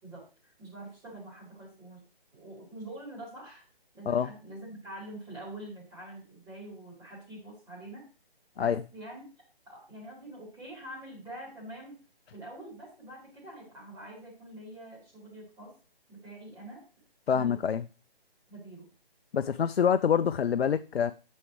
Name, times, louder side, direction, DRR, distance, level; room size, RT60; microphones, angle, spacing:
voice 1, 0.0-2.0 2.3-3.6 3.9-8.0 8.6-9.2 9.6-12.0 12.3-15.7 16.1-16.8 17.3-17.6 18.5-18.9 19.8-19.9, right 1 dB, 10° right, 4.0 m, -45 dB
voice 2, 17.3-17.8 19.3-21.1, left 7 dB, 85° left, 0.5 m, -26 dB
9.7 x 6.4 x 3.2 m
figure-of-eight pair, 155°, 30 cm